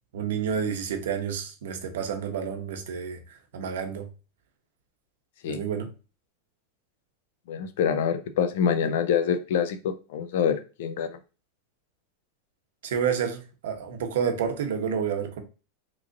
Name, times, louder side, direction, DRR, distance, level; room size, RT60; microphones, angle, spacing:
voice 1, 0.1-4.1 5.5-5.9 12.8-15.4, right 7 dB, 80° right, 0.8 m, -29 dB
voice 2, 7.5-11.2, left 7 dB, 65° left, 0.5 m, -26 dB
3.0 x 2.5 x 3.8 m
supercardioid pair, 165°, 0 cm